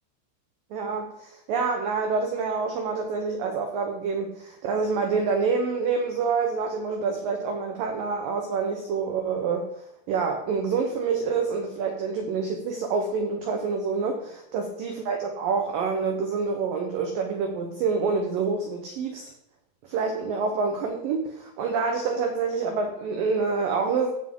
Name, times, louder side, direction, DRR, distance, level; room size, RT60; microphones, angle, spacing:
voice 1, 0.7-9.7 10.1-19.3 19.8-24.1, right 5 dB, 85° right, 4 dB, 1.9 m, -27 dB
15.5 x 7.5 x 3.8 m, 0.84 s
omnidirectional pair, 5.6 m